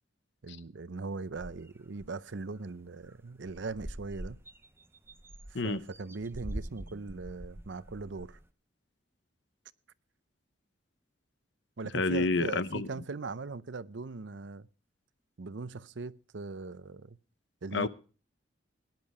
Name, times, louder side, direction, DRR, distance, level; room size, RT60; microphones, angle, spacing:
voice 1, 0.4-4.4 5.5-8.4 11.8-14.7 15.4-17.2 17.6-17.9, right 3 dB, 70° right, 0.7 m, -40 dB
sound 1, 1.4-2.1 2.6-2.7 2.9-3.2 3.4-8.4, right 1 dB, 15° right, 0.7 m, -44 dB
voice 2, 11.9-12.9 17.7-17.9, left 3 dB, 65° left, 0.9 m, -28 dB
18.0 x 10.5 x 4.9 m
head